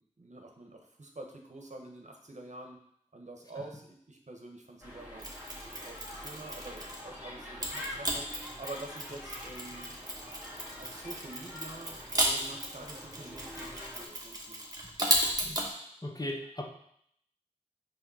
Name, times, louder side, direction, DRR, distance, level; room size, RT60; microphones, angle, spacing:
voice 1, 0.0-2.8 3.1-5.3 5.8-9.9 10.6-14.6, right 2 dB, 60° right, 2 dB, 1.2 m, -47 dB
sound 1, 4.8-14.1, left 1 dB, 15° right, 2.0 m, -46 dB
Mechanisms, 5.2-7.1 7.6-15.7, right 1 dB, 30° right, 1.5 m, -35 dB
voice 2, 16.0-16.6, left 1 dB, 30° left, 0 dB, 1.2 m, -37 dB
7.7 x 3.2 x 5.5 m, 0.68 s
wide cardioid pair, 55°, 13 cm